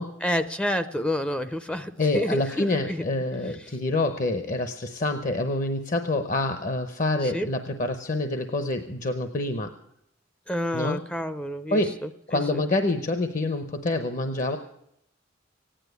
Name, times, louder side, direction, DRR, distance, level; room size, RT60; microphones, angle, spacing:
voice 1, 0.2-3.0 3.6-3.7 7.2-7.5 10.5-12.6, left 1 dB, 5° left, 11 dB, 0.5 m, -29 dB
voice 2, 2.0-9.7 10.7-11.0 11.7-12.0 12.3-14.6, left 2 dB, 45° left, 8 dB, 0.8 m, -27 dB
16.0 x 10.0 x 8.1 m, 0.78 s
head